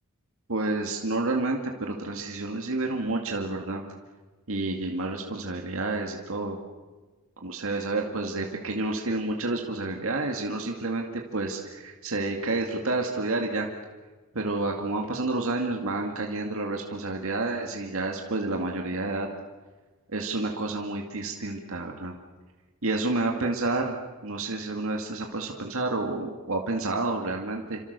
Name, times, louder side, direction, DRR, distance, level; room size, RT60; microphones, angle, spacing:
voice 1, 0.5-3.8 4.5-6.6 7.4-13.7 14.3-19.3 20.1-22.2 22.8-27.8, right 2 dB, 65° right, 2 dB, 2.2 m, -29 dB
28.5 x 26.0 x 6.8 m, 1.3 s
head